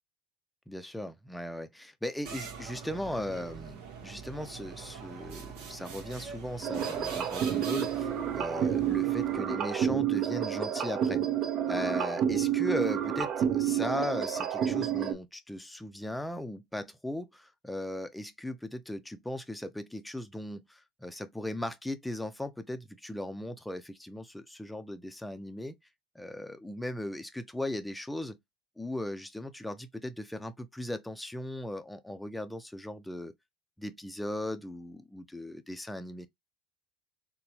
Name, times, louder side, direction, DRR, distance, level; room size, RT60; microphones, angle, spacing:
voice 1, 0.7-11.2 11.7-25.7 26.1-28.4 28.8-33.3 33.8-36.3, left 1 dB, 5° left, 0.6 m, -37 dB
sound 1, 2.3-9.7, right 6 dB, 75° right, 1.0 m, -44 dB
sound 2, 6.6-15.1, right 10 dB, 50° right, 0.9 m, -29 dB
4.0 x 2.2 x 2.8 m
supercardioid pair, 100°, 0 cm